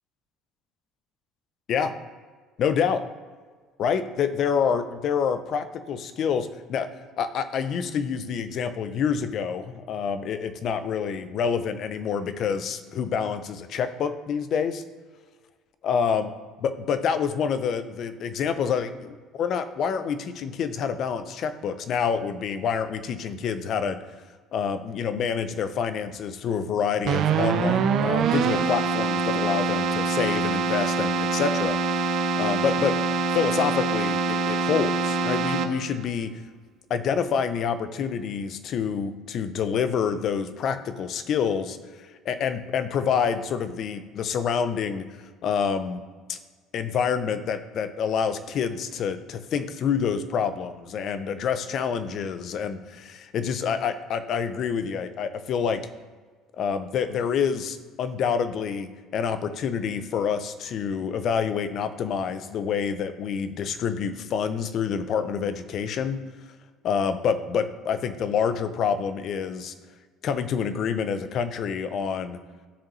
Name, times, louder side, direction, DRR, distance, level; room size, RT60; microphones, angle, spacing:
voice 1, 2.6-3.0 3.8-6.9 7.2-14.8 15.8-16.3 16.6-24.0 24.5-31.8 32.4-32.9 33.3-36.3 36.9-45.1 45.4-46.0 46.3-46.4 46.7-55.8 56.6-66.2 66.8-69.7 70.2-72.4, left 7 dB, 45° left, 11 dB, 0.4 m, -27 dB
Keyboard (musical), 27.0-36.0, right 4 dB, 50° right, 0.5 m, -24 dB
9.9 x 4.9 x 3.1 m, 1.5 s
cardioid pair, 145°, 0 cm